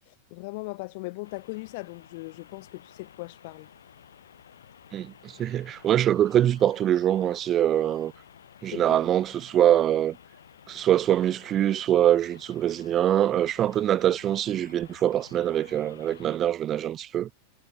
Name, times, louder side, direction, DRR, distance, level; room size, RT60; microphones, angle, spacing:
voice 1, 0.1-3.7 8.7-9.0, left 25 dB, 50° left, 1.2 m, -39 dB
sound 1, 1.2-16.4, left 9 dB, 65° left, 3.2 m, -53 dB
voice 2, 4.9-8.1 8.6-10.2 10.7-17.3, right 11 dB, 30° right, 0.3 m, -24 dB
figure-of-eight pair, 90°, 0 cm